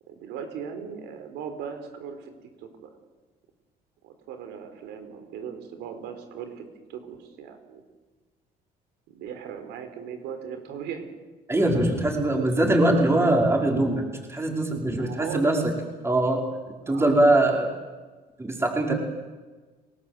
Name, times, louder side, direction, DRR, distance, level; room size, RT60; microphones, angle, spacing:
voice 1, 0.1-2.3 2.6-2.9 4.0-7.8 9.1-11.1 15.0-15.5 16.9-17.2, right 7 dB, 90° right, 7 dB, 4.3 m, -38 dB
voice 2, 11.5-14.0 14.3-15.6 16.0-16.4 16.9-17.7 18.4-18.9, right 1 dB, 15° right, 1 dB, 5.3 m, -22 dB
29.5 x 19.5 x 8.1 m, 1.3 s
cardioid pair, 110°, 17 cm